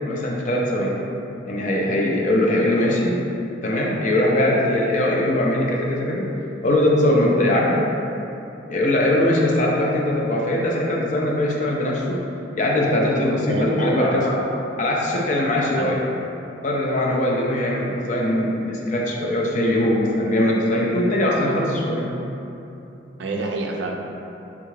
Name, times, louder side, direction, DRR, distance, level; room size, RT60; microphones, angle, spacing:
voice 1, 0.0-1.0 1.5-3.2 3.6-6.2 6.6-7.8 8.7-12.2 12.5-14.4 14.8-16.0 16.6-22.1, left 1 dB, 40° left, -3 dB, 0.4 m, -21 dB
voice 2, 13.5-14.3 15.7-16.1 23.2-23.9, right 2 dB, 65° right, 1 dB, 0.3 m, -27 dB
3.5 x 2.3 x 3.1 m, 2.9 s
head